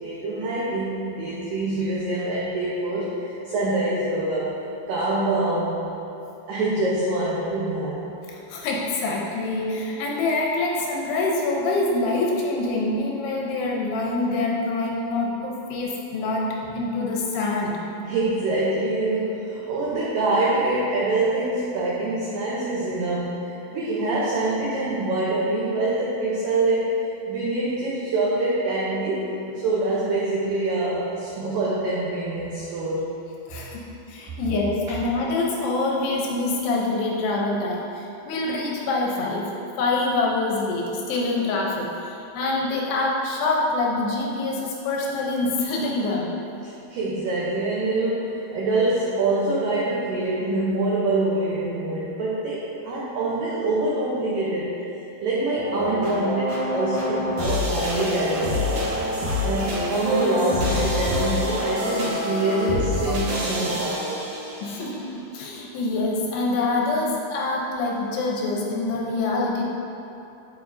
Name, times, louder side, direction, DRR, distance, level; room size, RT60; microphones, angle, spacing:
voice 1, 0.0-4.6 4.9-5.9 6.5-8.0 18.0-29.4 29.6-33.0 46.6-54.8 55.2-58.8 59.4-64.2, right 2 dB, 85° right, -6 dB, 1.9 m, -25 dB
voice 2, 8.3-17.8 33.5-33.8 34.1-46.3 64.6-69.7, left 2 dB, 75° left, -2 dB, 2.7 m, -25 dB
sound 1, 55.5-64.8, left 1 dB, 65° right, 1.6 m, -26 dB
9.7 x 6.8 x 2.6 m, 2.9 s
omnidirectional pair, 5.1 m